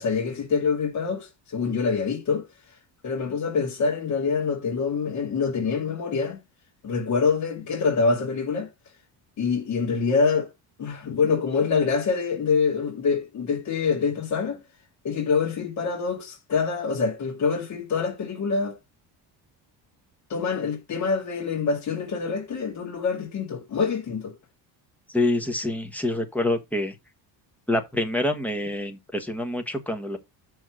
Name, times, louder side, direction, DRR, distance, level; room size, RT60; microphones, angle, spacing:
voice 1, 0.0-2.5 3.0-6.4 6.8-8.7 9.4-10.5 10.8-14.6 15.0-18.8 20.3-24.3, left 5 dB, 40° left, 2.3 m, -25 dB
voice 2, 25.1-26.9 27.7-30.2, left 1 dB, 5° left, 1.1 m, -26 dB
6.3 x 4.7 x 6.1 m
cardioid pair, 165°, 44 cm